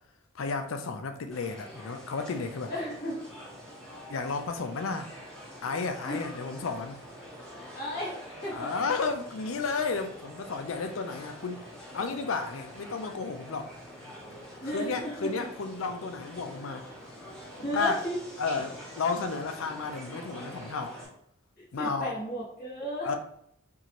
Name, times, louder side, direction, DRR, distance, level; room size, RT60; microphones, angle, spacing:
voice 1, 0.3-2.7 4.1-5.1 5.6-7.0 8.5-11.7 11.9-13.7 14.7-16.8 17.7-18.0 18.4-21.0 21.7-22.2 23.0-23.2, left 4 dB, 75° left, 0.5 m, -32 dB
sound 1, 1.3-21.1, equal, 5° left, 1.0 m, -46 dB
voice 2, 2.7-3.3 6.0-6.3 7.7-8.7 14.6-15.5 17.6-18.1 21.6-23.2, equal, 45° left, 1.5 m, -34 dB
4.6 x 2.5 x 2.9 m
head